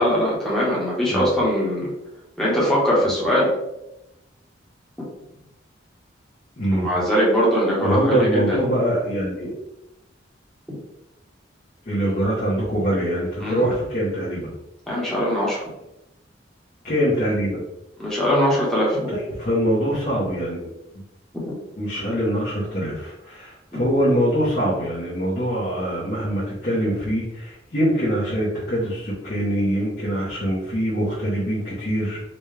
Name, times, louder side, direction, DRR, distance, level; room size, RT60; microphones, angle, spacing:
voice 1, 0.0-1.9 2.4-3.5 6.7-8.6 10.7-10.8 13.4-13.6 14.9-15.6 18.0-19.0 21.3-21.5, equal, ahead, -7 dB, 0.9 m, -21 dB
voice 2, 6.6-6.9 7.8-9.5 11.8-14.5 16.8-17.6 19.1-20.6 20.9-21.0 21.8-32.2, equal, 45° left, -8 dB, 0.9 m, -23 dB
4.0 x 2.3 x 3.2 m, 0.91 s
head